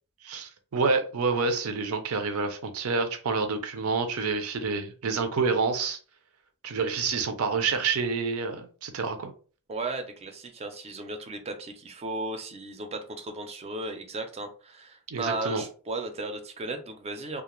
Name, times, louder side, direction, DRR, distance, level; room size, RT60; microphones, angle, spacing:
voice 1, 0.2-6.0 6.6-9.3 15.1-15.6, right 4 dB, 75° right, 7 dB, 0.5 m, -28 dB
voice 2, 9.7-17.4, right 2 dB, 30° right, 6 dB, 0.4 m, -35 dB
2.3 x 2.1 x 3.0 m, 0.39 s
head